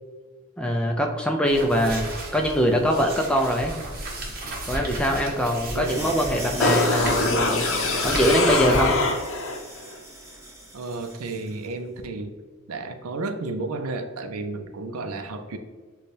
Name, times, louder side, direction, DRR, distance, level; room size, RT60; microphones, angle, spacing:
voice 1, 0.6-3.7 4.7-7.6 8.0-9.0, equal, 5° left, 2 dB, 0.4 m, -23 dB
sound 1, 1.4-8.8, right 1 dB, 40° right, 0.9 m, -34 dB
voice 2, 5.7-6.1 10.7-12.3 12.7-15.6, right 3 dB, 80° right, 7 dB, 0.5 m, -32 dB
sound 2, 5.8-11.5, right 1 dB, 15° right, 0.9 m, -36 dB
sound 3, 6.6-9.6 9.9-10.0, left 3 dB, 60° left, 0.6 m, -23 dB
6.7 x 2.3 x 3.3 m, 1.4 s
head